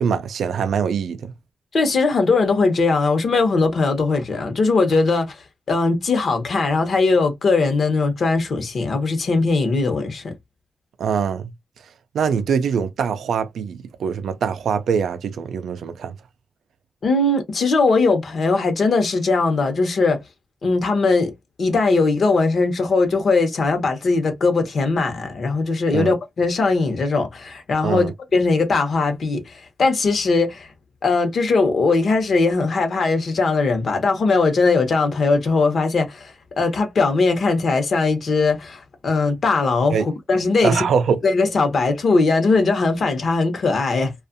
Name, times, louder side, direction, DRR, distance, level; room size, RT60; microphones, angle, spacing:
voice 1, 0.0-1.3 11.0-11.5 12.1-16.1 25.9-26.2 27.8-28.1 39.9-40.1 40.6-41.2, right 6 dB, 85° right, 0.4 m, -23 dB
voice 2, 1.7-10.3 17.0-20.2 20.6-21.3 21.6-28.1 28.3-30.7 31.0-40.8 41.2-44.1, left 3 dB, 60° left, 0.8 m, -20 dB
2.6 x 2.3 x 2.5 m
wide cardioid pair, 105°, 0 cm